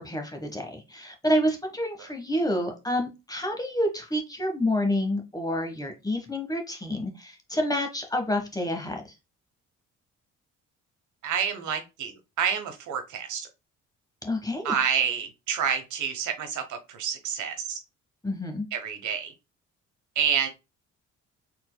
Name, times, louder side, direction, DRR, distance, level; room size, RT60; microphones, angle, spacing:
voice 1, 0.0-9.0 14.2-14.7 18.2-18.7, left 1 dB, 10° left, 3 dB, 1.2 m, -28 dB
voice 2, 11.2-13.5 14.6-17.8 18.7-19.3 20.1-20.5, right 7 dB, 75° right, 6 dB, 1.2 m, -28 dB
4.5 x 3.9 x 2.2 m, 0.26 s
cardioid pair, 90°, 30 cm